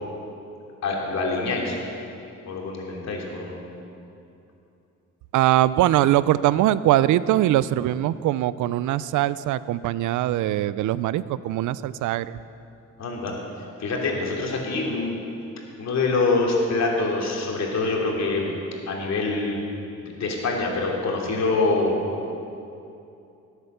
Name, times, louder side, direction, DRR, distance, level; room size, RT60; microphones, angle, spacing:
voice 1, 0.8-1.8 2.4-3.7 13.0-13.3 13.8-15.2 15.8-18.5 18.9-19.6 20.0-22.0, left 3 dB, 60° left, -1 dB, 3.0 m, -25 dB
voice 2, 5.3-12.4, right 13 dB, 80° right, 17 dB, 0.5 m, -22 dB
18.5 x 8.2 x 6.8 m, 2.7 s
cardioid pair, 90°, 30 cm